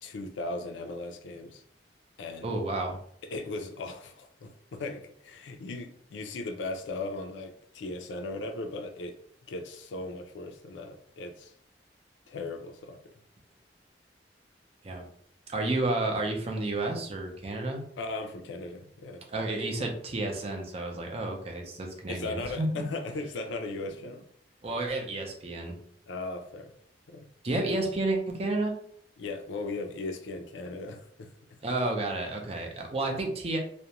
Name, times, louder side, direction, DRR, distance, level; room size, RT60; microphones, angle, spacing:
voice 1, 0.0-1.6 2.2-2.5 3.3-9.2 9.5-11.5 12.3-13.0 18.0-19.2 22.1-24.2 26.1-26.7 27.1-27.3 29.2-31.3, left 2 dB, 85° left, 0.4 m, -37 dB
voice 2, 2.4-3.0 14.8-15.0 15.5-17.8 19.3-22.9 24.6-25.8 27.4-28.7 31.6-33.6, right 2 dB, 35° right, 0.5 m, -31 dB
2.4 x 2.1 x 2.8 m
head